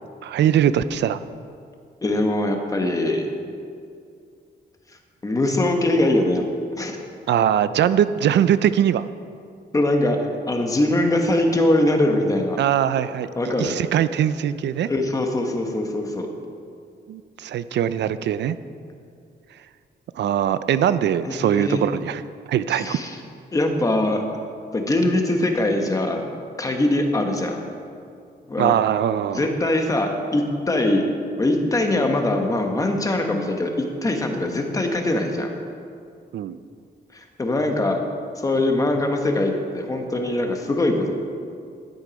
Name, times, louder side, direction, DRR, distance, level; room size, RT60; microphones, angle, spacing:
voice 1, 0.2-1.2 7.3-9.1 12.6-13.3 13.6-14.9 17.1-18.6 20.2-22.2 22.5-23.0 28.6-29.5 36.3-36.6, right 10 dB, 80° right, 14 dB, 0.4 m, -21 dB
voice 2, 2.0-3.3 5.2-6.4 6.7-7.0 9.7-12.6 13.4-13.8 14.9-16.3 21.2-21.8 22.7-23.2 23.5-24.2 24.7-26.3 26.6-27.6 28.5-28.8 29.3-31.0 31.4-35.5 37.1-38.0 38.4-41.1, left 1 dB, 20° left, 3 dB, 1.0 m, -22 dB
12.0 x 9.7 x 5.1 m, 2.4 s
wide cardioid pair, 180°, 18 cm